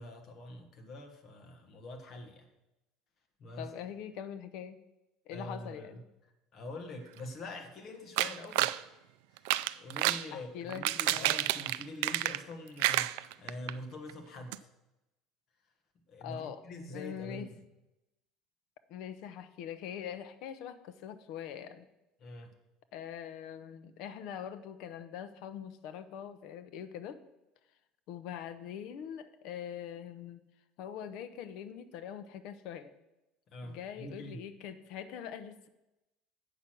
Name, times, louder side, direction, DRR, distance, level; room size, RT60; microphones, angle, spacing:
voice 1, 0.0-2.5 3.4-3.7 5.3-5.9 6.5-8.8 9.3-9.5 9.8-14.7 16.1-17.6 22.2-22.5 33.5-34.4, left 1 dB, 30° left, 4 dB, 1.2 m, -45 dB
voice 2, 3.6-4.8 5.3-6.0 10.3-11.3 16.2-16.6 16.9-17.5 18.9-21.9 22.9-27.2 28.1-30.4 30.8-32.9 33.6-35.7, left 9 dB, 55° left, 11 dB, 0.7 m, -43 dB
sound 1, 8.2-8.8 9.4-10.3 10.7-12.5 12.8-13.7 14.1-14.2 14.5-14.6, right 16 dB, 85° right, 0.3 m, -30 dB
8.3 x 5.8 x 6.2 m, 0.94 s
cardioid pair, 175°, 0 cm